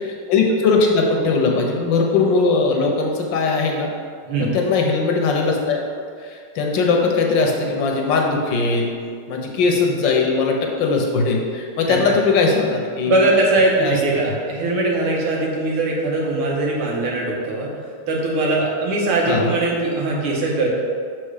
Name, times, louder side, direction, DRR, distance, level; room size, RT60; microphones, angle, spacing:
voice 1, 0.0-3.9 4.4-5.8 6.2-8.9 9.3-13.2 13.8-14.0 19.3-19.5, left 4 dB, 70° left, 1 dB, 1.3 m, -19 dB
voice 2, 4.3-4.6 11.9-12.0 13.0-17.7 18.1-20.7, right 2 dB, 85° right, -2 dB, 2.1 m, -20 dB
6.0 x 4.5 x 4.8 m, 2.1 s
omnidirectional pair, 2.3 m